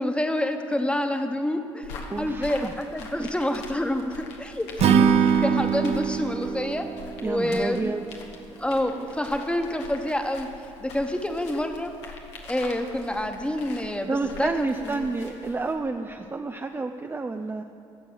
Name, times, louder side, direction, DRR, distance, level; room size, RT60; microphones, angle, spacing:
voice 1, 0.0-6.9 7.2-7.9 8.6-10.5 10.8-11.9 12.4-15.1, left 1 dB, 5° left, 6 dB, 1.3 m, -28 dB
sound 1, 1.8-15.8, left 3 dB, 70° left, 1.4 m, -43 dB
voice 2, 2.1-2.7 3.2-3.3 7.2-8.0 14.1-17.6, right 3 dB, 15° right, 5 dB, 0.6 m, -30 dB
Acoustic guitar / Strum, 4.8-8.1, right 7 dB, 45° right, 0.8 m, -23 dB
17.0 x 6.9 x 7.9 m, 2.6 s
figure-of-eight pair, 50°, 15 cm